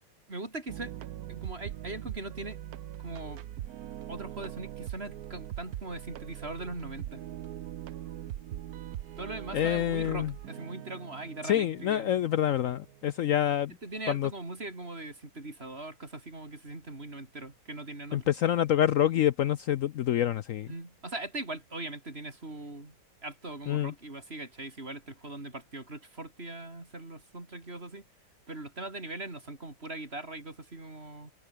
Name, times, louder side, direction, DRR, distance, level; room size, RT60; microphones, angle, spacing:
voice 1, 0.3-0.9 1.3-2.6 3.0-3.4 4.1-7.2 9.2-12.2 13.8-18.3 20.7-22.9 23.2-28.0 28.5-31.3, right 2 dB, 30° right, 4.2 m, -40 dB
sound 1, 0.7-13.2, right 12 dB, 60° right, 1.1 m, -42 dB
voice 2, 9.5-10.3 11.4-13.7 14.1-14.3 18.1-20.7 23.7-23.9, left 11 dB, 75° left, 0.7 m, -27 dB
omnidirectional pair, 2.0 m